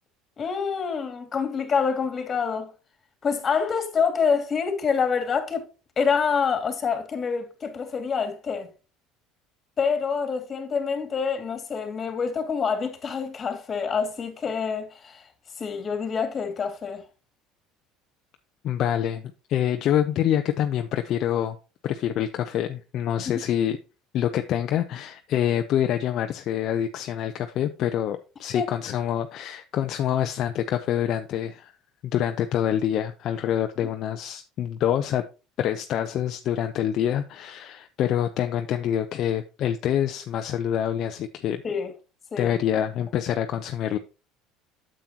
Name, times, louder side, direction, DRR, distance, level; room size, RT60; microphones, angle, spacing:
voice 1, 0.4-2.7 3.2-5.7 6.0-8.7 9.8-15.2 15.6-17.0 23.3-23.4 28.5-28.7 41.6-41.9 42.3-42.5, left 6 dB, 30° left, 2.3 m, -26 dB
voice 2, 18.6-19.2 19.5-21.6 21.8-23.8 24.1-31.7 32.0-35.2 35.6-41.6 42.4-44.0, left 10 dB, 55° left, 0.7 m, -26 dB
8.8 x 7.7 x 2.9 m
supercardioid pair, 110°, 0 cm